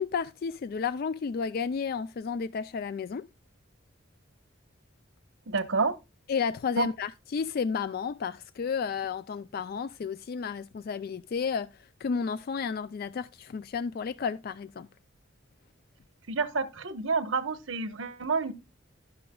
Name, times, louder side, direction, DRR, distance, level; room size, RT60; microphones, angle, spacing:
voice 1, 0.0-3.3 6.3-14.9, left 6 dB, 50° left, 0.3 m, -32 dB
voice 2, 5.5-6.0 6.8-6.9 16.3-18.5, right 4 dB, 85° right, 1.1 m, -29 dB
15.5 x 6.0 x 2.3 m
head